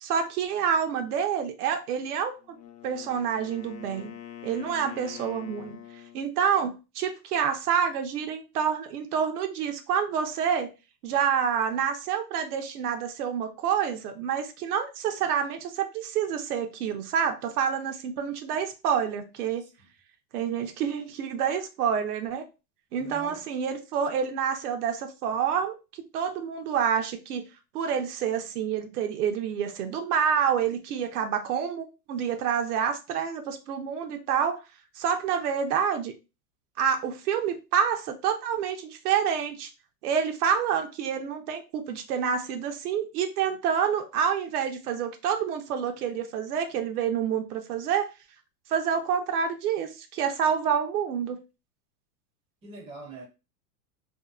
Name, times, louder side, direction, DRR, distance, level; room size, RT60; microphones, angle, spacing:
voice 1, 0.0-2.4 2.8-4.1 4.4-5.7 6.1-10.7 11.0-19.7 20.3-22.4 22.9-25.7 26.1-27.4 27.7-34.6 34.9-36.1 36.8-39.7 40.0-48.1 48.7-51.4, right 7 dB, 65° right, 0.7 m, -28 dB
Wind instrument woodwind instrument, 2.4-6.3, left 11 dB, 70° left, 0.7 m, -44 dB
voice 2, 19.6-19.9 23.0-23.5 52.6-53.2, right 3 dB, 15° right, 0.5 m, -44 dB
2.7 x 2.0 x 2.3 m
supercardioid pair, 150°, 48 cm